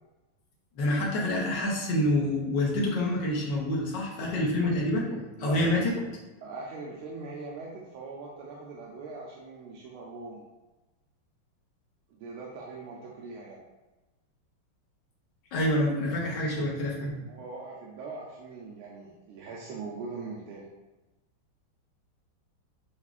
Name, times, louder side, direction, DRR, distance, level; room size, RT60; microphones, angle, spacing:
voice 1, 0.8-5.9 15.5-17.2, left 1 dB, 65° left, -3 dB, 1.4 m, -27 dB
voice 2, 5.4-5.8 6.4-10.5 12.2-13.6 17.3-20.7, right 3 dB, 80° right, -3 dB, 1.5 m, -41 dB
7.0 x 2.4 x 2.4 m, 1.1 s
omnidirectional pair, 2.4 m